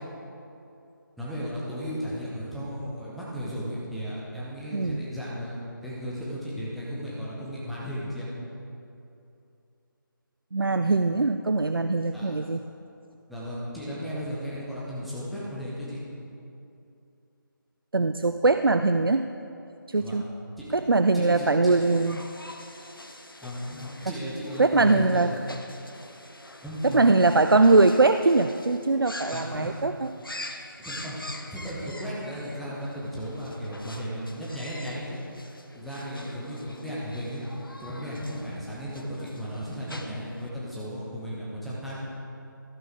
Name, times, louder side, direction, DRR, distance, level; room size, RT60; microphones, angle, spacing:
voice 1, 1.2-8.3 12.1-12.3 13.3-16.0 20.0-20.2 20.6-20.7 21.1-21.7 23.4-25.3 25.7-25.8 26.6-27.2 29.3-29.8 30.8-31.2 31.5-35.2 35.7-37.4 37.8-42.0, equal, ahead, -9 dB, 0.4 m, -35 dB
voice 2, 4.7-5.0 10.5-12.6 17.9-19.2 19.9-20.2 20.7-22.2 24.6-25.3 26.8-30.1, right 3 dB, 85° right, 9 dB, 0.4 m, -21 dB
sound 1, 21.7-40.5, left 1 dB, 80° left, 1.0 m, -45 dB
14.0 x 8.6 x 3.4 m, 2.7 s
figure-of-eight pair, 155°, 12 cm